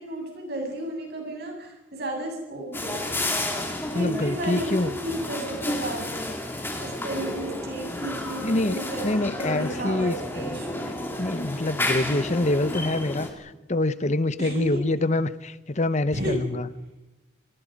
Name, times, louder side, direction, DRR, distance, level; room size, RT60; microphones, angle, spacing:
voice 1, 0.0-3.3 3.9-6.3 6.7-10.9 14.4-14.8 16.1-16.4, right 1 dB, 55° right, 1 dB, 7.6 m, -33 dB
sound 1, 2.7-13.3, left 1 dB, 10° left, 2.7 m, -31 dB
voice 2, 3.9-4.9 8.4-10.2 10.4-10.6 11.2-16.7, left 2 dB, 35° left, 15 dB, 0.9 m, -26 dB
29.0 x 21.5 x 5.3 m, 1.0 s
head